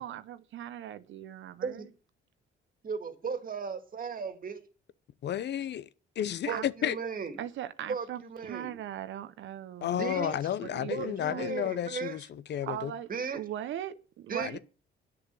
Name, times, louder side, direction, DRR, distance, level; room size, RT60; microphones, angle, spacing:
voice 1, 0.0-1.9 6.5-6.7 7.4-10.2 10.6-11.6 12.6-13.1 13.3-14.6, right 11 dB, 70° right, 0.7 m, -40 dB
voice 2, 2.8-4.6 6.5-7.4 7.9-8.8 10.0-10.3 10.9-12.2 13.1-13.4 14.3-14.6, right 5 dB, 45° right, 1.9 m, -36 dB
voice 3, 5.2-5.9 6.2-7.0 9.8-12.9 14.4-14.6, left 10 dB, 60° left, 0.7 m, -32 dB
9.4 x 6.8 x 8.2 m
cardioid pair, 90°, 20 cm